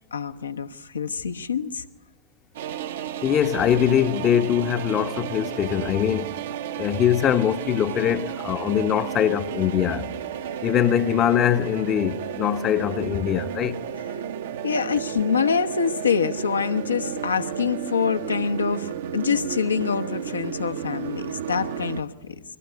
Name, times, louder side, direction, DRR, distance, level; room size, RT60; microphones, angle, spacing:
voice 1, 0.1-1.8 14.6-22.4, left 6 dB, 75° left, 1.1 m, -25 dB
sound 1, 2.6-22.0, right 9 dB, 60° right, 1.0 m, -33 dB
voice 2, 3.2-6.3 6.8-10.1 10.6-13.8, left 10 dB, 30° left, 0.9 m, -22 dB
23.5 x 18.5 x 9.5 m
figure-of-eight pair, 90°, 0 cm